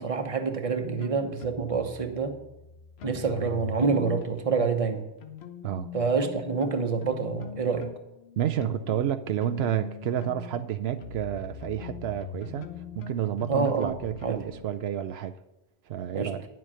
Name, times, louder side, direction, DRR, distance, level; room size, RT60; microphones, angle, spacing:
voice 1, 0.0-2.4 3.0-5.1 5.9-7.9 13.5-13.9 14.2-14.4 16.1-16.3, right 5 dB, 35° right, 1.0 m, -27 dB
sound 1, 0.8-4.9 5.2-14.7, left 7 dB, 90° left, 1.1 m, -42 dB
voice 2, 8.4-12.7 13.0-15.4 15.9-16.5, right 10 dB, 80° right, 0.8 m, -30 dB
10.5 x 7.6 x 5.6 m
omnidirectional pair, 1.0 m